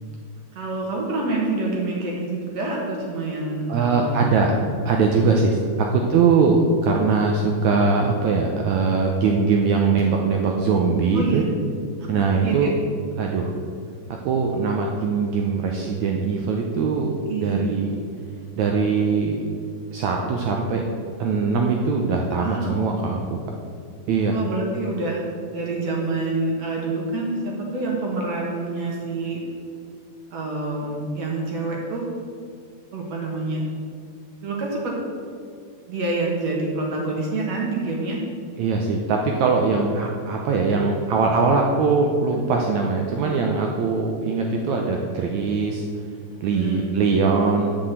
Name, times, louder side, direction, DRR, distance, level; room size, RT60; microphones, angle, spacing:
voice 1, 0.5-4.4 5.2-5.3 5.8-5.9 11.1-11.5 12.0-12.1 12.4-12.7 17.3-17.8 22.4-22.8 24.3-25.2 25.5-29.4 30.3-32.1 32.9-33.6 34.4-35.0 35.9-38.2 46.5-46.9, right 2 dB, 60° right, -2 dB, 2.1 m, -27 dB
voice 2, 3.7-4.5 4.8-11.4 12.1-12.7 13.2-13.5 14.2-17.1 17.4-18.0 18.6-19.4 19.9-20.8 21.2-23.4 24.1-24.4 38.6-45.9 46.4-47.7, right 4 dB, 85° right, 1 dB, 1.6 m, -21 dB
8.4 x 6.0 x 7.9 m, 2.2 s
omnidirectional pair, 4.2 m